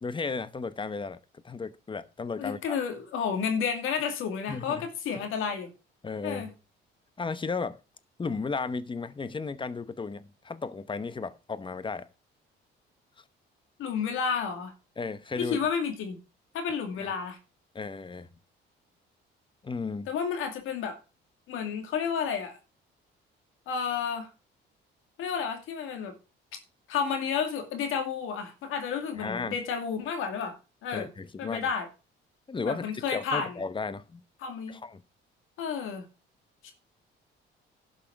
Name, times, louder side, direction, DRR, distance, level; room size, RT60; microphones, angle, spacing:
voice 1, 0.0-1.2 1.4-2.8 4.5-4.9 5.2-5.3 6.0-6.5 7.2-7.8 8.2-12.1 13.2-13.3 15.0-15.6 17.0-17.1 17.7-18.3 19.6-20.1 29.2-29.6 30.9-31.6 32.5-34.2 34.7-35.0, left 4 dB, 25° left, 0.9 m, -34 dB
voice 2, 2.4-5.7 6.2-6.5 13.8-14.7 15.4-16.2 16.5-17.4 20.1-21.0 21.5-22.6 23.7-24.3 25.2-26.1 26.9-30.6 30.8-31.1 31.4-31.9 32.6-33.6 34.4-34.8 35.6-36.0 36.6-36.7, left 6 dB, 85° left, 2.5 m, -31 dB
11.5 x 5.7 x 5.9 m
cardioid pair, 100°, 20 cm